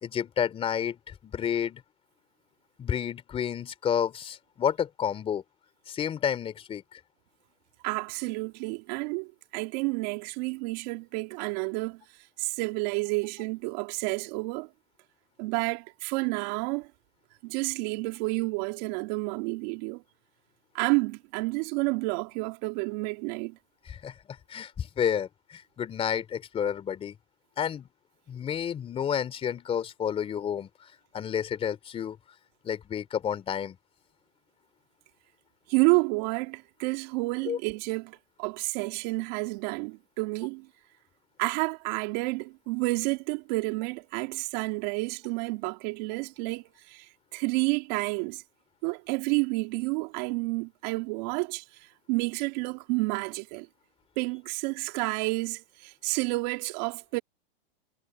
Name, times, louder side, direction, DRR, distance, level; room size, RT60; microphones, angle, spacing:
voice 1, 0.0-1.8 2.8-5.4 5.9-7.0 23.9-24.1 24.5-27.2 27.6-27.9 28.3-30.7 31.1-32.2 32.6-33.8 37.5-37.6, left 8 dB, 20° left, 3.1 m, -30 dB
voice 2, 7.8-12.0 12.4-14.7 15.4-16.9 17.4-20.0 20.7-23.6 35.7-40.7 41.4-47.1 47.3-48.4 48.8-51.6 52.1-53.7 54.2-57.2, right 27 dB, 45° right, 2.9 m, -30 dB
hypercardioid pair, 140°, 29 cm